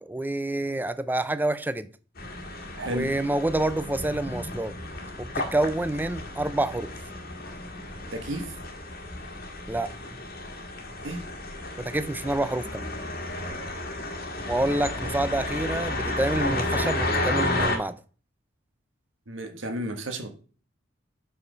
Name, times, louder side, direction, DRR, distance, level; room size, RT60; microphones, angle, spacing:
voice 1, 0.0-1.9 2.9-4.8 5.2-6.9 9.7-9.9 11.8-12.9 14.5-17.9, right 1 dB, 10° right, 0.4 m, -27 dB
sound 1, 2.2-17.8, left 2 dB, 50° left, 1.6 m, -32 dB
voice 2, 2.8-3.1 8.1-8.5 11.0-11.2 19.3-20.3, equal, 65° right, 1.4 m, -32 dB
6.2 x 5.7 x 5.1 m
head